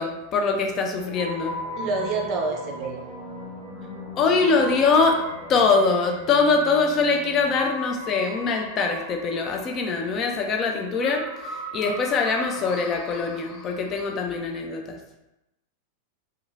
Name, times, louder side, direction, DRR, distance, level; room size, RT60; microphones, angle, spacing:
voice 1, 0.0-1.6 4.2-5.2 5.5-15.0, left 4 dB, 30° left, 3 dB, 0.3 m, -23 dB
sound 1, 1.0-8.4, equal, 10° left, 0.9 m, -42 dB
sound 2, 1.1-14.2, equal, 50° left, 0.8 m, -39 dB
voice 2, 1.8-3.0, right 3 dB, 40° right, 1 dB, 0.5 m, -27 dB
2.9 x 2.2 x 2.3 m, 0.90 s
figure-of-eight pair, 90°, 0 cm